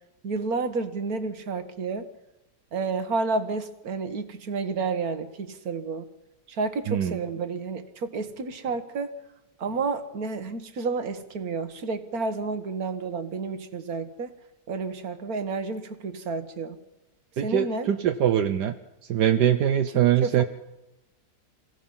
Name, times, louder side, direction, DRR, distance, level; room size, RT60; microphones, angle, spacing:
voice 1, 0.2-2.1 2.7-6.1 6.5-9.1 9.6-14.3 14.7-16.8 17.4-17.9 20.2-20.4, right 4 dB, 60° right, 9 dB, 1.9 m, -30 dB
voice 2, 6.9-7.2 17.4-18.7 19.1-20.4, right 10 dB, 80° right, 7 dB, 1.5 m, -22 dB
28.0 x 17.0 x 5.7 m, 0.96 s
omnidirectional pair, 1.8 m